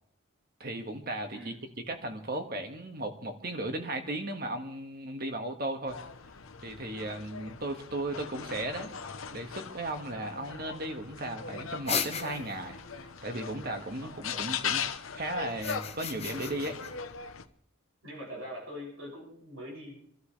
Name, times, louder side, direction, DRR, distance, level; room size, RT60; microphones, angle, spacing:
voice 1, 0.6-1.5 1.9-6.0 6.6-8.9 9.3-14.8 15.1-16.8, right 1 dB, 45° right, 5 dB, 1.8 m, -36 dB
sound 1, 5.9-17.5, left 7 dB, 75° left, 1.0 m, -39 dB
sound 2, 11.9-12.7 15.5-16.9, left 7 dB, 30° left, 1.2 m, -35 dB
voice 2, 14.0-14.5 18.0-20.0, equal, 75° right, -3 dB, 7.0 m, -43 dB
27.5 x 12.5 x 3.3 m, 0.64 s
head